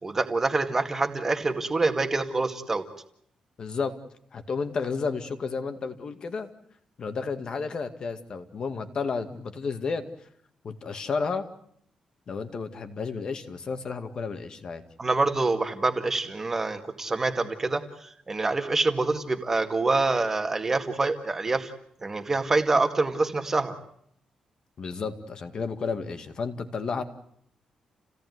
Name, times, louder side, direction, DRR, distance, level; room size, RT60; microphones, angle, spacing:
voice 1, 0.0-2.8 15.0-21.7 22.0-23.8, right 3 dB, 20° right, 6 dB, 2.1 m, -26 dB
voice 2, 3.6-4.0 4.3-6.5 7.0-10.0 10.6-11.5 12.3-14.8 24.8-27.0, left 5 dB, 40° left, 8 dB, 2.1 m, -32 dB
29.5 x 17.5 x 9.5 m, 0.70 s
wide cardioid pair, 175°, 2 cm